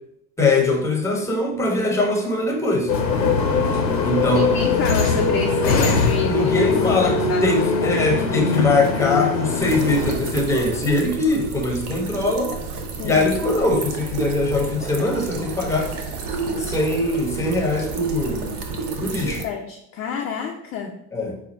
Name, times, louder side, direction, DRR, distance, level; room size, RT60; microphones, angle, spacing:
voice 1, 0.4-2.9 4.0-4.5 6.2-12.6 13.0-15.9 16.6-18.5 19.0-19.4 21.1-21.4, left 2 dB, 5° left, 2 dB, 0.8 m, -22 dB
sound 1, 2.9-10.1, left 4 dB, 85° left, 0.8 m, -21 dB
voice 2, 4.3-8.1 11.7-12.0 12.9-13.3 19.3-21.0, left 6 dB, 30° left, 0 dB, 0.5 m, -29 dB
sound 2, 9.6-19.4, right 4 dB, 60° right, 0.8 m, -30 dB
4.7 x 2.4 x 4.1 m, 0.78 s
figure-of-eight pair, 70°, 50 cm